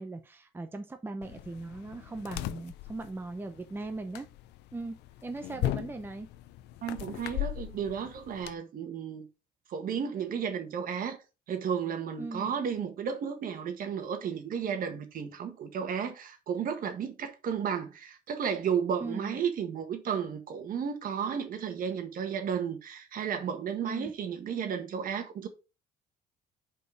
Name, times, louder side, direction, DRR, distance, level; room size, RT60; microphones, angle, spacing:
voice 1, 0.0-4.3 4.7-5.0 5.2-6.3 12.2-12.5 19.0-19.4 23.8-24.1, right 2 dB, 15° right, 0.7 m, -39 dB
sound 1, 1.2-8.5, left 14 dB, 85° left, 0.5 m, -38 dB
voice 2, 6.8-9.3 9.7-11.2 11.5-25.5, right 7 dB, 55° right, 1.5 m, -33 dB
5.3 x 4.4 x 5.0 m
cardioid pair, 110°, 17 cm